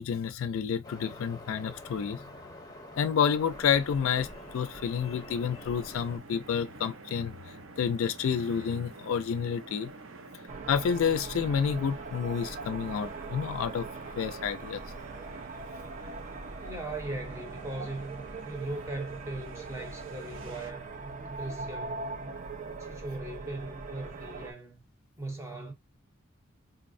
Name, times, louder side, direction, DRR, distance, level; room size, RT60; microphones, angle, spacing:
voice 1, 0.0-2.2 3.0-9.9 10.7-13.9 14.2-14.8, left 7 dB, 85° left, 0.3 m, -29 dB
Waves surf, 0.8-6.2, left 1 dB, 20° left, 0.9 m, -46 dB
sound 1, 3.4-20.7, right 3 dB, 75° right, 0.7 m, -49 dB
sound 2, 10.5-24.5, right 3 dB, 40° right, 0.4 m, -41 dB
voice 2, 16.6-20.9 21.3-22.3 22.8-24.8 25.2-25.7, right 2 dB, 15° right, 0.9 m, -39 dB
3.9 x 2.0 x 2.5 m
head